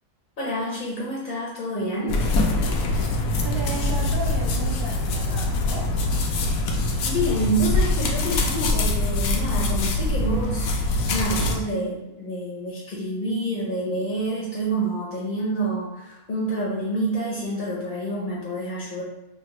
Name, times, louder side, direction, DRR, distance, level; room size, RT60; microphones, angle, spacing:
voice 1, 0.4-2.2 7.1-10.7 11.1-19.0, right 1 dB, 40° left, -5 dB, 0.8 m, -28 dB
sound 1, 2.1-11.6, left 2 dB, 75° left, 1.1 m, -23 dB
voice 2, 3.4-6.1, right 3 dB, 45° right, -3 dB, 0.9 m, -35 dB
5.6 x 2.0 x 3.1 m, 0.92 s
omnidirectional pair, 1.6 m